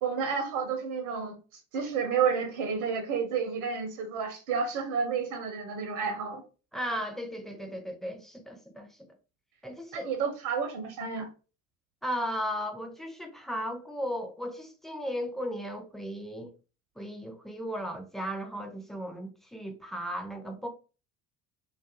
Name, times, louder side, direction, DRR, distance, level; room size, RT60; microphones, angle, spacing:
voice 1, 0.0-1.4 1.7-6.4 9.9-11.3, right 6 dB, 70° right, 0.7 m, -30 dB
voice 2, 6.7-8.9 9.6-10.1 12.0-16.5 17.0-20.7, equal, ahead, 0.3 m, -36 dB
2.4 x 2.4 x 2.4 m
figure-of-eight pair, 60°, 46 cm